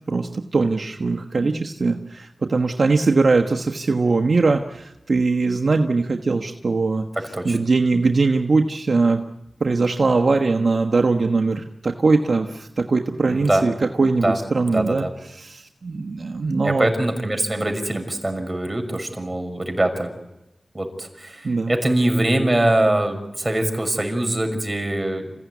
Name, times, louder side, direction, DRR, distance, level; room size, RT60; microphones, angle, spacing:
voice 1, 0.1-7.0 7.4-9.2 9.6-13.7 14.0-15.0 15.4-16.9 21.4-21.7, right 3 dB, 70° right, 5 dB, 1.3 m, -21 dB
voice 2, 7.1-7.6 13.3-13.6 14.2-14.4 14.7-15.1 16.6-20.1 20.7-25.2, right 1 dB, 25° right, 5 dB, 6.3 m, -23 dB
28.0 x 16.0 x 9.6 m, 0.95 s
cardioid pair, 45°, 0 cm